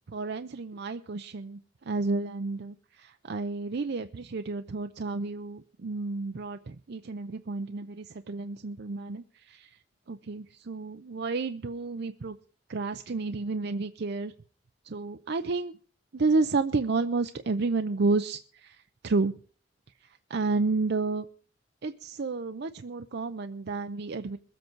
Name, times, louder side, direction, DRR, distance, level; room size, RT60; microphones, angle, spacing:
voice 1, 0.1-9.8 10.1-12.4 12.7-14.3 14.8-15.7 16.1-19.3 20.3-21.3 21.8-24.4, right 3 dB, 60° right, 8 dB, 0.6 m, -31 dB
22.0 x 8.0 x 4.5 m, 0.41 s
head